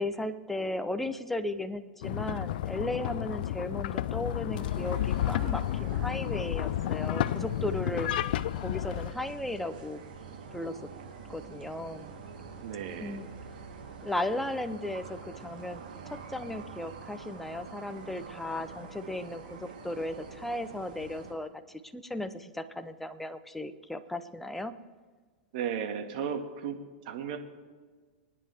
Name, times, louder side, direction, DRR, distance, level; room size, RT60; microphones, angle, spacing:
voice 1, 0.0-8.1 8.6-10.0 10.5-10.8 11.3-12.1 13.0-13.3 14.0-15.8 16.1-24.7, left 1 dB, 5° left, 9 dB, 0.8 m, -36 dB
Hand cart on rails, 2.0-9.1, left 13 dB, 65° left, 0.5 m, -31 dB
sound 1, 4.5-21.3, right 5 dB, 80° right, 3.5 m, -46 dB
voice 2, 12.6-13.2 25.5-26.8 27.1-27.4, right 7 dB, 60° right, 5 dB, 1.9 m, -34 dB
24.5 x 9.9 x 3.6 m, 1.4 s
hypercardioid pair, 130°, 5 cm